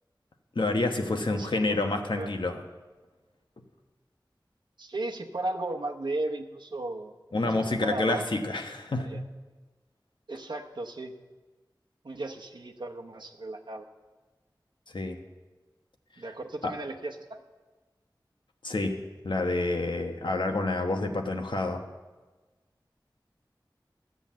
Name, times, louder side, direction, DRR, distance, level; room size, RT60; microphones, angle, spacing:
voice 1, 0.5-2.6 7.3-9.2 14.9-15.2 16.6-16.7 18.6-18.9 19.2-21.8, left 2 dB, 85° left, 4 dB, 1.2 m, -28 dB
voice 2, 1.1-1.8 2.1-2.3 4.8-7.2 7.4-8.2 9.0-9.2 10.3-11.1 12.0-13.9 16.2-17.4, right 2 dB, 75° right, 1 dB, 0.9 m, -35 dB
12.5 x 8.1 x 7.4 m, 1.3 s
wide cardioid pair, 60°, 8 cm